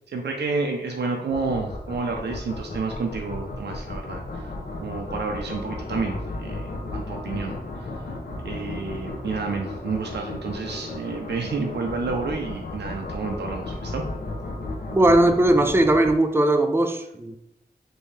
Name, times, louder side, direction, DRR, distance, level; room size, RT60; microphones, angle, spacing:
voice 1, 0.0-4.5 4.8-8.1 8.4-14.0, right 4 dB, 90° right, 2 dB, 0.4 m, -30 dB
sound 1, 1.3-16.1, left 2 dB, 60° left, 0.6 m, -34 dB
voice 2, 14.9-17.4, right 1 dB, 15° right, 6 dB, 0.3 m, -19 dB
3.3 x 2.7 x 3.2 m, 0.83 s
wide cardioid pair, 100°, 17 cm